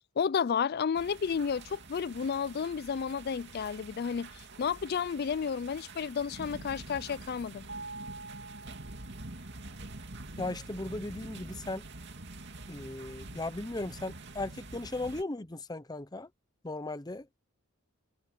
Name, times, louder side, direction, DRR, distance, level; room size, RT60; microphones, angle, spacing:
voice 1, 0.2-4.3 4.6-7.7, left 6 dB, 50° left, 0.4 m, -31 dB
sound 1, 0.9-15.2, right 2 dB, 55° right, 2.6 m, -46 dB
Mallet percussion, 7.7-9.7, right 3 dB, 75° right, 2.0 m, -46 dB
voice 2, 10.4-11.8 12.7-16.3 16.6-17.3, left 2 dB, 20° left, 0.7 m, -37 dB
head